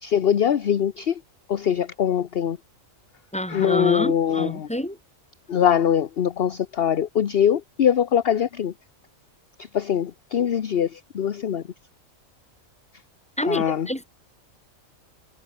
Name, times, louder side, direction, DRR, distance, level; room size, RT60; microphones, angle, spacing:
voice 1, 0.0-1.2 1.5-2.6 3.5-4.7 5.5-8.7 9.6-11.6 13.4-13.9, left 9 dB, 50° left, 1.0 m, -22 dB
voice 2, 3.3-5.0 13.4-14.0, equal, 5° left, 3.8 m, -27 dB
omnidirectional pair, 1.4 m